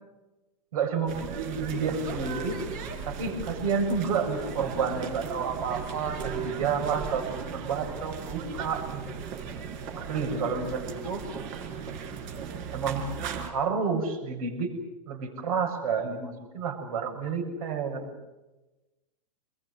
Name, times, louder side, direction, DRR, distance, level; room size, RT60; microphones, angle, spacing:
voice 1, 0.7-2.5 3.0-9.0 10.0-11.2 12.7-13.0 13.4-14.7 15.1-18.1, right 5 dB, 65° right, 4 dB, 7.1 m, -30 dB
sound 1, 1.1-13.5, right 6 dB, 50° right, 5.2 m, -37 dB
27.5 x 22.0 x 7.9 m, 1.1 s
hypercardioid pair, 125°, 20 cm